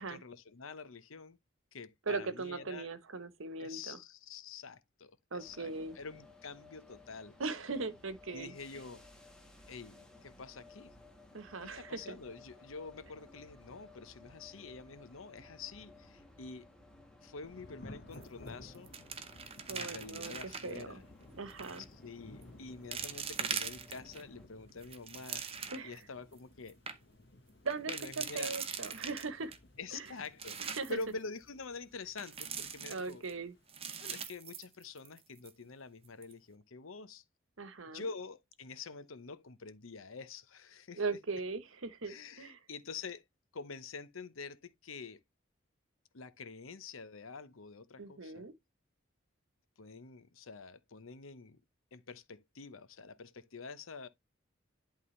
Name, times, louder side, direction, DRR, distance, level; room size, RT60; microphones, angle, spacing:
voice 1, 0.0-1.4 1.7-2.9 3.6-7.3 8.3-9.0 9.7-10.9 11.7-16.7 17.2-18.9 19.7-21.0 21.9-25.4 25.8-26.8 27.9-28.7 29.8-33.2 34.0-37.2 37.9-41.0 42.0-43.2 43.5-45.2 46.1-48.5 49.8-51.6 51.9-54.1, left 4 dB, 85° left, 0.9 m, -47 dB
voice 2, 2.1-4.0 5.3-5.9 7.4-8.5 11.3-12.2 19.7-20.3 20.6-21.0 21.3-21.8 25.7-26.0 27.6-29.5 29.9-30.1 30.6-31.0 32.9-33.5 37.6-38.1 40.9-42.6 48.0-48.5, right 4 dB, 80° right, 1.1 m, -39 dB
sound 1, 5.4-24.5, left 2 dB, 5° left, 1.5 m, -58 dB
Thunder / Rain, 17.4-33.7, left 1 dB, 55° left, 1.1 m, -57 dB
sound 2, 18.1-18.5 18.7-20.8 21.5-21.9 22.4-22.5 22.9-24.2 24.7-26.0 26.4-26.5 26.7-27.0 27.7-29.6 30.1-31.0 32.2-33.3 33.7-35.2 35.5-35.6 36.1-36.3, right 7 dB, 30° right, 0.8 m, -41 dB
11.0 x 3.7 x 3.2 m
head